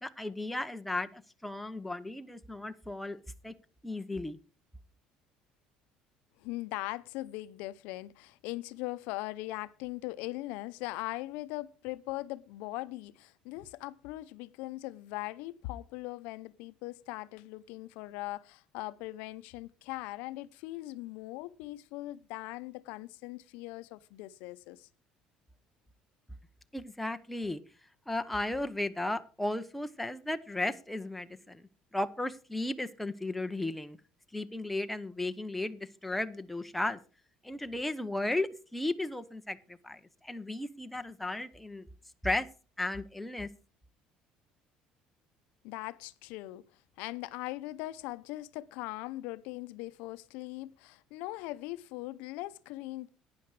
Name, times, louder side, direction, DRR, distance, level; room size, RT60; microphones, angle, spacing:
voice 1, 0.0-3.5 3.8-4.4 26.7-27.6 28.1-31.6 31.9-34.0 34.3-37.0 37.4-41.9 42.2-42.5 42.8-43.5, left 2 dB, 5° left, 0.8 m, -35 dB
voice 2, 6.4-24.9 45.6-46.6 47.0-53.1, left 18 dB, 85° left, 0.6 m, -40 dB
12.0 x 9.6 x 4.8 m
cardioid pair, 140°, 3 cm